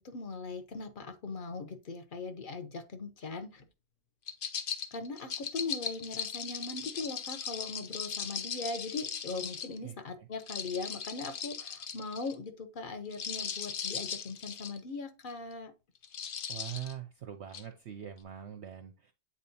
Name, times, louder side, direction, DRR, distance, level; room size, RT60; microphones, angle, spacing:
voice 1, 0.0-3.7 4.9-15.7, left 3 dB, 40° left, 0.9 m, -40 dB
sound 1, 4.3-9.8 10.4-12.3 13.1-14.8 15.3-15.5 16.0-16.9 17.5-17.6, left 7 dB, 60° left, 0.6 m, -38 dB
voice 2, 9.8-10.3 16.5-19.1, right 10 dB, 60° right, 0.7 m, -43 dB
8.6 x 4.2 x 2.7 m
omnidirectional pair, 1.5 m